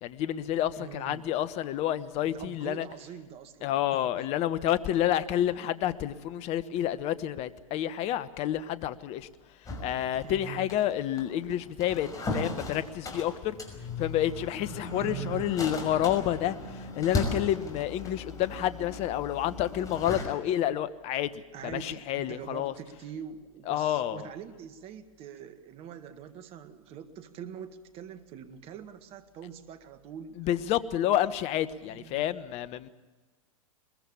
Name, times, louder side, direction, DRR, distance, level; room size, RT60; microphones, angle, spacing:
voice 1, 0.0-2.9 3.6-9.3 9.8-13.5 14.0-22.7 23.7-24.3 30.4-32.9, left 11 dB, 35° left, 14 dB, 1.2 m, -29 dB
voice 2, 0.8-1.2 2.2-4.3 5.3-5.4 10.2-10.7 14.7-15.5 21.5-30.4 31.8-32.2, right 9 dB, 35° right, 9 dB, 1.9 m, -43 dB
sound 1, 9.6-20.2, left 2 dB, 20° left, 5.7 m, -37 dB
22.0 x 22.0 x 7.1 m, 1.2 s
hypercardioid pair, 105°, 17 cm